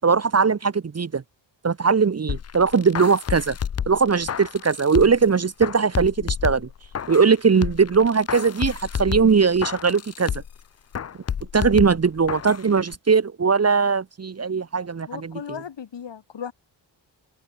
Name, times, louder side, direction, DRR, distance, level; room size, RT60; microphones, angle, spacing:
voice 1, 0.0-1.2 1.6-3.6 3.9-6.7 7.1-10.3 11.5-15.3, right 5 dB, 35° right, 1.1 m, -20 dB
sound 1, 2.3-5.3 5.6-7.3 7.6-10.6 10.9-12.6 12.9-13.0, left 8 dB, 35° left, 0.6 m, -30 dB
voice 2, 15.1-16.5, left 7 dB, 70° left, 6.8 m, -36 dB
open air
cardioid pair, 75°, 46 cm